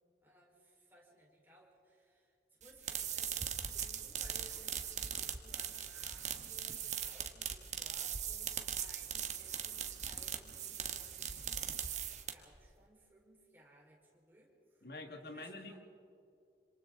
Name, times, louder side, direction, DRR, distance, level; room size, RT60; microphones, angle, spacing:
voice 1, 0.2-2.3 2.6-14.9 15.3-15.8, right 1 dB, 10° right, -3 dB, 4.3 m, -62 dB
sound 1, 2.6-12.6, right 8 dB, 40° right, 1.3 m, -40 dB
voice 2, 14.8-15.8, left 2 dB, 55° left, 4 dB, 1.9 m, -46 dB
26.5 x 26.5 x 3.8 m, 2.5 s
head